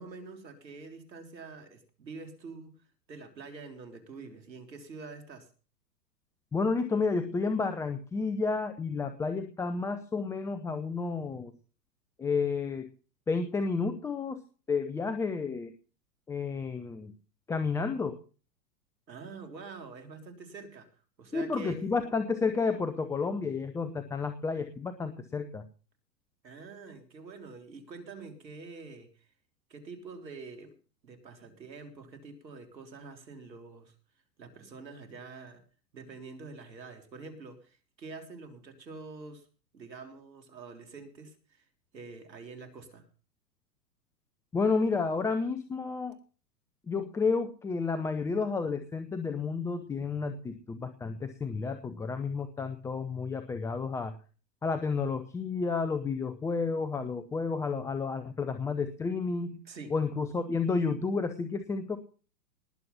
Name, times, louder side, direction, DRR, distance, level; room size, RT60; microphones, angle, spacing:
voice 1, 0.0-2.8 3.1-5.5 19.1-20.9 21.2-21.8 26.4-29.3 29.7-30.7 31.0-33.9 34.4-35.6 35.9-39.5 39.7-41.7 41.9-43.1 59.6-59.9, right 4 dB, 85° right, 6 dB, 3.7 m, -46 dB
voice 2, 6.5-11.5 12.2-12.9 13.3-14.4 14.7-15.7 16.3-17.1 17.5-18.2 21.3-25.6 44.5-46.2 46.9-54.1 54.6-59.6 59.9-62.0, left 4 dB, 5° left, 10 dB, 0.6 m, -31 dB
19.5 x 7.7 x 5.6 m, 0.38 s
hypercardioid pair, 120°, 50 cm